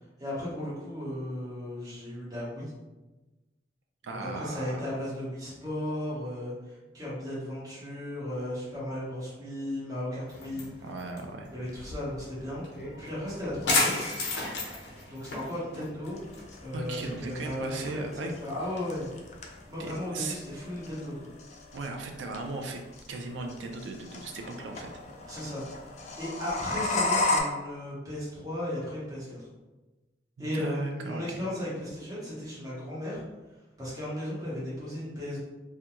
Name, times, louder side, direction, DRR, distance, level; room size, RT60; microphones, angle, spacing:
voice 1, 0.2-2.7 4.1-10.7 11.5-12.7 13.0-14.1 15.0-16.2 16.6-19.1 19.7-21.3 25.3-25.6 26.2-29.4 30.4-33.2 33.8-35.4, left 1 dB, 20° right, -9 dB, 0.9 m, -35 dB
voice 2, 4.0-4.9 10.8-11.5 16.7-18.3 19.8-20.4 21.7-22.8 23.1-24.9 30.4-31.5, right 3 dB, 85° right, 3 dB, 0.4 m, -37 dB
sound 1, 10.3-20.0, left 2 dB, 70° left, 0.6 m, -35 dB
sound 2, 16.1-27.4, left 2 dB, 40° left, 0.3 m, -34 dB
2.4 x 2.2 x 2.9 m, 1.1 s
head